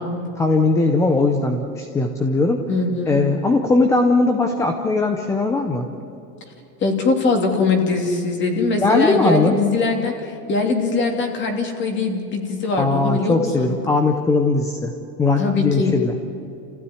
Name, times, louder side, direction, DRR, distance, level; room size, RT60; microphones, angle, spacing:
voice 1, 0.4-2.6 3.1-5.8 8.8-9.6 12.8-14.9 15.2-16.2, left 3 dB, 5° left, 5 dB, 0.5 m, -19 dB
voice 2, 2.7-3.2 6.8-13.7 15.4-16.0, left 3 dB, 25° left, 3 dB, 2.9 m, -22 dB
28.5 x 15.5 x 9.7 m, 2.7 s
supercardioid pair, 155°, 49 cm